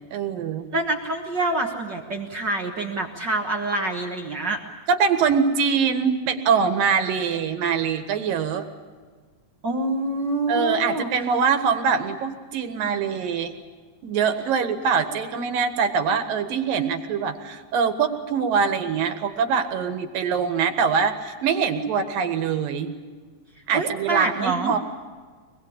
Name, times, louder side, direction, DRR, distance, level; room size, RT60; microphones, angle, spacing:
voice 1, 0.1-0.7 4.9-8.6 10.5-13.6 14.0-22.9 23.7-24.8, right 6 dB, 80° right, 7 dB, 3.3 m, -23 dB
voice 2, 0.7-4.6 9.6-11.1 23.7-24.7, right 2 dB, 55° right, 2 dB, 1.3 m, -26 dB
24.5 x 21.0 x 8.6 m, 1.5 s
omnidirectional pair, 4.0 m